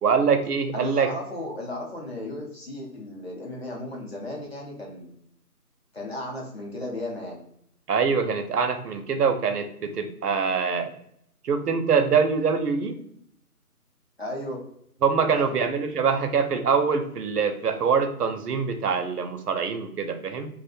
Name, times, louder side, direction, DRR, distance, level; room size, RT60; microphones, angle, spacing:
voice 1, 0.0-1.1 7.9-10.9 11.4-13.0 15.0-20.5, right 5 dB, 80° right, 7 dB, 0.6 m, -24 dB
voice 2, 0.7-5.1 5.9-7.4 14.2-14.6 15.3-15.5, left 1 dB, 45° left, -2 dB, 0.6 m, -35 dB
2.4 x 2.0 x 2.5 m, 0.68 s
figure-of-eight pair, 165°, 46 cm